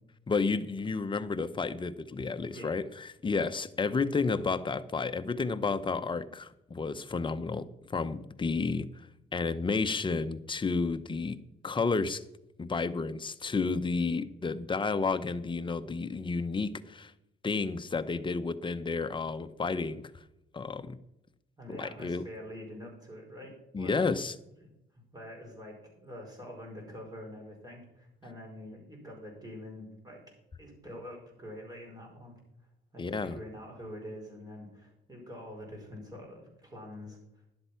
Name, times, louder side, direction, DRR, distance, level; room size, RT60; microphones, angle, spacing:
voice 1, 0.3-11.4 11.6-12.2 12.6-17.1 17.4-20.2 20.5-21.0 21.7-22.2 23.7-24.4 33.0-33.4, left 4 dB, 25° left, 10 dB, 0.8 m, -31 dB
voice 2, 2.5-2.8 21.6-24.1 24.6-24.7 24.9-30.2 30.6-32.3 32.9-37.2, equal, 20° right, 0 dB, 5.2 m, -45 dB
11.5 x 7.8 x 5.8 m, 0.86 s
cardioid pair, 90°, 20 cm